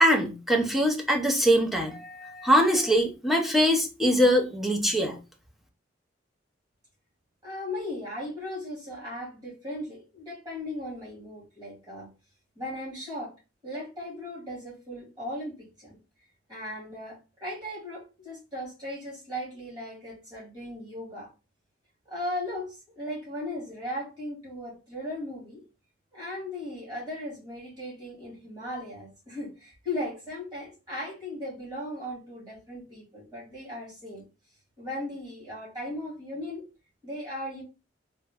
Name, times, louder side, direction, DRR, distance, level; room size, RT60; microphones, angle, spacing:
voice 1, 0.0-5.2, equal, ahead, 0.6 m, -23 dB
voice 2, 7.4-12.1 12.6-13.3 13.6-16.0 16.5-21.3 22.1-25.6 26.1-34.2 34.8-36.7 37.0-37.6, left 1 dB, 20° right, 2.0 m, -37 dB
3.7 x 2.2 x 3.5 m
head